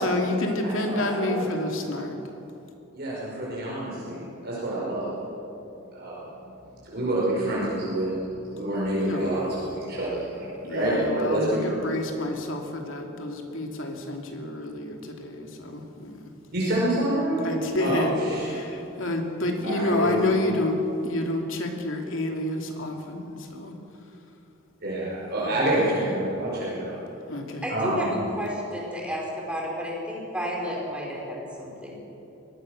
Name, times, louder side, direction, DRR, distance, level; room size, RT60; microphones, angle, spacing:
voice 1, 0.0-2.2 9.0-9.3 9.6-9.7 10.6-16.3 17.4-23.8 25.4-25.9 27.3-27.7, left 2 dB, 70° left, 2 dB, 2.8 m, -29 dB
voice 2, 0.6-1.6 2.9-5.1 5.9-6.2 6.8-11.7 16.5-18.7 19.6-20.3 24.8-26.9 27.7-28.2, right 1 dB, 50° right, -6 dB, 5.3 m, -27 dB
voice 3, 27.6-28.1 28.4-32.0, equal, 5° right, -3 dB, 4.9 m, -32 dB
23.5 x 19.0 x 6.6 m, 2.9 s
head